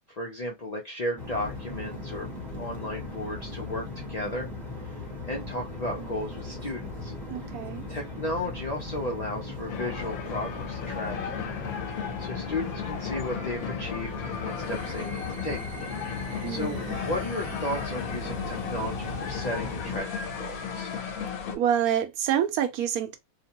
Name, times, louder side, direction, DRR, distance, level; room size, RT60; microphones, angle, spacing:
voice 1, 0.1-2.3 2.6-4.5 4.8-7.1 7.9-11.5 11.9-15.6 16.5-20.9, left 1 dB, 60° left, 0.4 m, -34 dB
sound 1, 1.2-20.0, left 2 dB, ahead, 1.0 m, -38 dB
voice 2, 7.3-7.9 16.4-17.0 21.5-23.2, right 9 dB, 85° right, 1.1 m, -28 dB
sound 2, 9.7-21.6, left 7 dB, 85° left, 1.2 m, -35 dB
sound 3, 14.4-20.9, right 3 dB, 50° right, 0.6 m, -50 dB
2.9 x 2.1 x 2.8 m
omnidirectional pair, 1.5 m